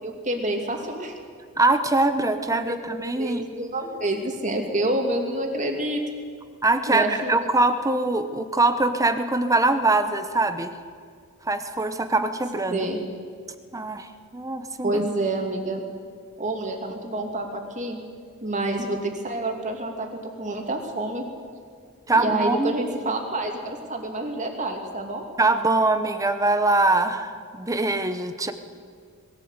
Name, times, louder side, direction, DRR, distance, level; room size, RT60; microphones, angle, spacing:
voice 1, 0.0-1.1 2.7-2.8 3.2-6.0 6.9-7.5 12.7-13.0 14.8-15.8 16.4-18.0 18.4-20.1 20.4-21.3 22.1-25.2, right 2 dB, 35° right, 3 dB, 2.6 m, -28 dB
voice 2, 1.6-3.5 6.6-10.7 11.5-12.9 13.7-15.1 22.1-22.7 25.4-28.5, right 2 dB, 15° right, 9 dB, 1.0 m, -23 dB
21.0 x 15.5 x 8.2 m, 2.1 s
head